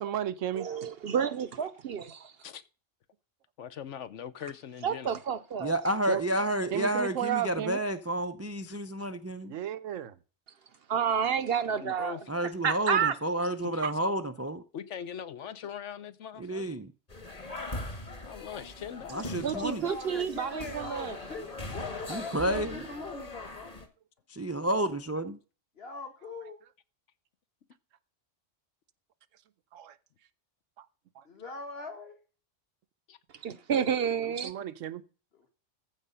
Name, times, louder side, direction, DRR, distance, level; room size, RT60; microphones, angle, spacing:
voice 1, 0.0-0.7 6.1-6.2 6.7-7.8 9.4-10.2 13.8-13.9 29.7-30.0 31.2-31.3 34.2-35.0, right 11 dB, 90° right, 1.1 m, -33 dB
voice 2, 0.6-2.3 4.8-5.7 10.9-12.2 12.6-13.1 19.4-21.2 33.4-34.5, right 7 dB, 60° right, 0.8 m, -30 dB
voice 3, 3.6-5.2 11.7-12.2 13.7-13.8 14.7-16.7 18.2-19.3 33.1-33.2, left 8 dB, 70° left, 1.1 m, -41 dB
voice 4, 5.6-9.5 12.3-14.6 16.4-16.9 19.1-19.8 22.1-22.8 24.3-25.4, right 1 dB, 20° right, 0.4 m, -30 dB
sound 1, 17.1-23.9, left 2 dB, 30° left, 1.6 m, -41 dB
voice 5, 19.5-23.7 25.8-26.6 31.2-32.2 35.3-35.5, left 3 dB, 55° left, 2.2 m, -42 dB
14.5 x 4.9 x 5.6 m
omnidirectional pair, 1.3 m